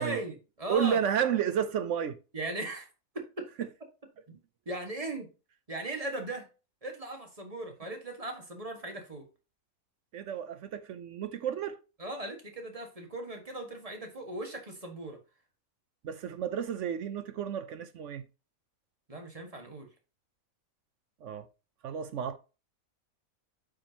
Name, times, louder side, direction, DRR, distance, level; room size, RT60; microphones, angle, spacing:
voice 1, 0.0-1.0 2.3-2.9 3.1-3.5 4.3-4.4 4.6-5.3 5.7-6.5 6.8-9.2 12.0-15.2 19.1-19.9, right 2 dB, 25° right, 1.7 m, -38 dB
voice 2, 0.7-2.2 3.6-3.7 10.1-11.8 16.0-18.2 21.2-21.5 21.8-22.4, right 8 dB, 65° right, 0.9 m, -31 dB
8.5 x 5.1 x 2.9 m
omnidirectional pair, 1.5 m